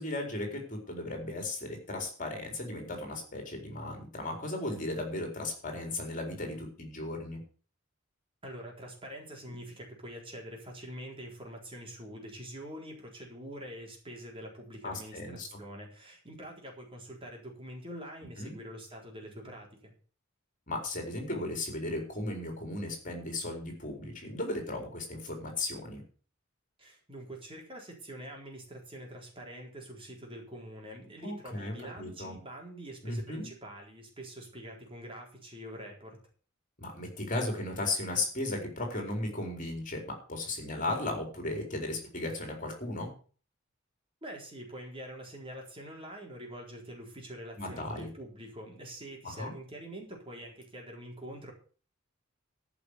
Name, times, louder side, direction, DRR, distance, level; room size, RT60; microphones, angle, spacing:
voice 1, 0.0-7.4 14.8-15.6 18.4-18.6 20.7-26.0 31.2-32.4 33.0-33.5 36.8-43.1 47.6-48.1 49.2-49.5, left 2 dB, 40° left, 3 dB, 4.3 m, -36 dB
voice 2, 8.4-19.9 26.8-36.2 44.2-51.5, equal, 25° right, 0 dB, 4.1 m, -45 dB
14.0 x 6.2 x 8.2 m, 0.41 s
head